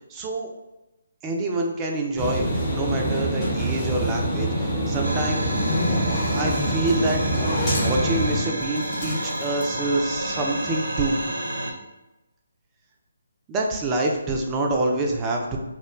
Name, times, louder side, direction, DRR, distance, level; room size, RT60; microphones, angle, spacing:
voice 1, 0.1-0.5 1.2-2.5 2.7-5.4 6.3-11.2 13.5-15.6, right 2 dB, 20° right, 0 dB, 0.4 m, -26 dB
sound 1, 2.2-8.4, right 1 dB, 20° left, 0.9 m, -25 dB
sound 2, 5.0-11.7, right 1 dB, 70° right, 0.5 m, -30 dB
Zipper (clothing), 5.3-10.6, left 2 dB, 40° left, 0.5 m, -31 dB
2.3 x 2.1 x 3.0 m, 1.0 s
figure-of-eight pair, 145°, 0 cm